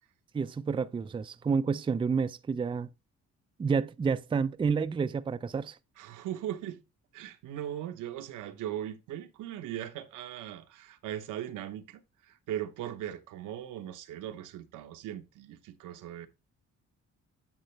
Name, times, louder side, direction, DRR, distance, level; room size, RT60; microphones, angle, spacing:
voice 1, 0.3-2.9 3.6-5.8, right 5 dB, 15° right, 0.4 m, -29 dB
voice 2, 6.0-6.8 7.1-16.3, right 11 dB, 85° right, 0.9 m, -39 dB
8.9 x 5.5 x 3.2 m
cardioid pair, 90°, 30 cm